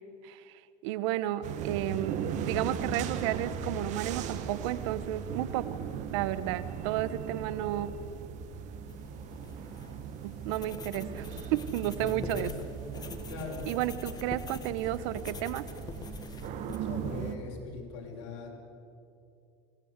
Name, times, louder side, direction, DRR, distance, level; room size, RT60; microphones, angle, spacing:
voice 1, 0.8-5.8 6.1-7.9 10.2-11.3 11.5-12.5 13.7-15.6, right 13 dB, 80° right, 15 dB, 1.2 m, -32 dB
sound 1, 1.4-17.3, right 7 dB, 55° right, 2.0 m, -38 dB
sound 2, 8.9-16.8, left 5 dB, 25° left, 1.7 m, -45 dB
voice 2, 11.8-12.8 13.3-13.8 16.8-18.5, left 3 dB, 85° left, 0 dB, 5.8 m, -41 dB
24.5 x 19.0 x 8.2 m, 2.6 s
supercardioid pair, 120°, 15 cm